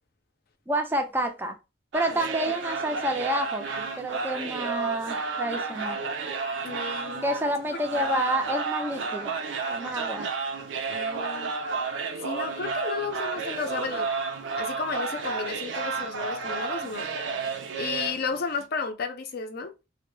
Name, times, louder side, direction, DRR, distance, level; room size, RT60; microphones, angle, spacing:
voice 1, 0.7-1.6 1.9-6.0 7.2-9.4 9.7-10.3, right 1 dB, 10° right, 0.4 m, -29 dB
sound 1, 1.9-18.6, right 4 dB, 70° right, 0.4 m, -32 dB
voice 2, 6.6-7.2 8.1-8.2 10.9-11.5 12.2-14.1 14.6-17.1 17.8-19.7, left 4 dB, 55° left, 0.5 m, -33 dB
2.1 x 2.0 x 3.1 m
head